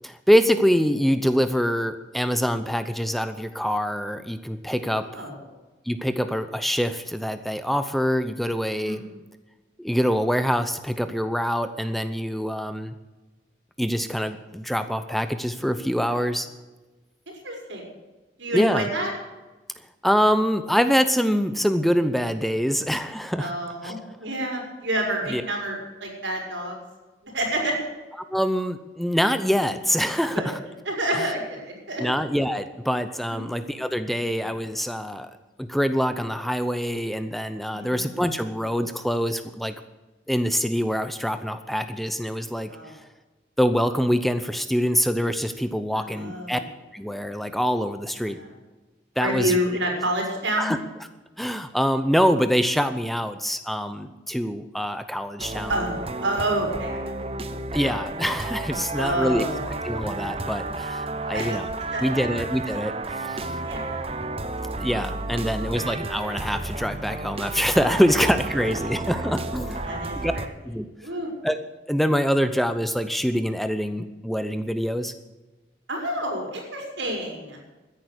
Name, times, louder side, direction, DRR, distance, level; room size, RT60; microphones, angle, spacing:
voice 1, 0.0-5.1 5.9-9.0 9.8-12.9 13.8-16.5 18.5-18.9 20.0-23.5 23.8-23.9 25.3-25.4 28.3-30.6 31.1-31.2 32.0-35.3 35.6-39.7 40.3-42.7 43.6-46.6 46.9-48.4 49.2-49.5 50.6-50.8 51.4-55.8 57.7-59.4 59.8-61.7 62.0-63.6 64.8-70.3 70.7-70.9 71.4-71.6 71.9-75.1, equal, ahead, 10 dB, 0.7 m, -25 dB
voice 2, 17.4-17.8 18.4-19.1 23.4-26.8 27.2-27.8 30.3-30.5 30.9-32.0 33.3-33.5 37.7-38.0 42.7-43.0 45.9-46.6 48.3-48.5 49.2-50.7 55.7-55.9 56.2-57.1 58.9-59.7 61.1-61.6 61.9-62.3 63.6-64.2 65.6-65.9 68.6-68.7 69.1-69.2 69.9-70.4 71.0-71.3 75.9-77.6, right 1 dB, 90° right, 1 dB, 5.5 m, -29 dB
sound 1, 55.4-70.5, right 2 dB, 30° right, 0.9 m, -32 dB
13.5 x 10.5 x 8.3 m, 1.1 s
head